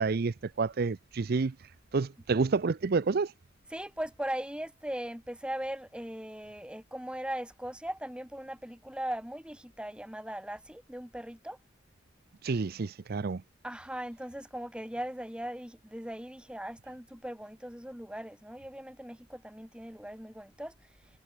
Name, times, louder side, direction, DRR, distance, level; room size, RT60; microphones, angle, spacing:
voice 1, 0.0-1.5 1.9-3.3 12.4-13.4, right 4 dB, 50° right, 0.5 m, -29 dB
voice 2, 3.7-11.6 13.6-20.7, right 1 dB, 5° right, 2.4 m, -39 dB
head